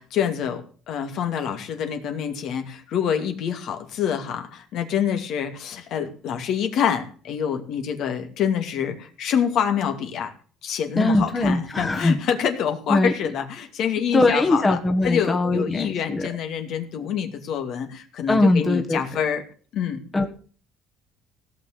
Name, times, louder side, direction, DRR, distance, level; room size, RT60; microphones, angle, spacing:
voice 1, 0.0-10.3 10.6-19.4 19.7-20.0, left 8 dB, 60° left, 5 dB, 2.4 m, -26 dB
voice 2, 10.9-12.2 12.9-13.1 14.1-16.3 18.3-19.0 20.1-20.3, left 2 dB, 15° left, 4 dB, 1.6 m, -21 dB
16.5 x 6.4 x 8.2 m, 0.42 s
cardioid pair, 120°, 0 cm